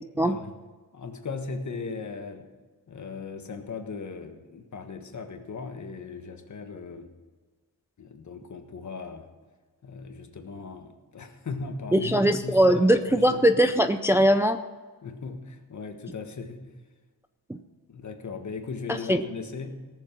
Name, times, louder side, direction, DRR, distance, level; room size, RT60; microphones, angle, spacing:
voice 1, 0.1-0.5 0.9-2.5 2.9-7.1 8.0-9.3 9.8-13.4 15.0-16.7 17.5-17.6 17.9-19.8, left 4 dB, 50° left, 5 dB, 1.5 m, -38 dB
voice 2, 11.9-14.6 19.1-19.2, right 1 dB, 5° right, 7 dB, 0.4 m, -20 dB
18.0 x 7.2 x 6.0 m, 1.4 s
wide cardioid pair, 135°, 37 cm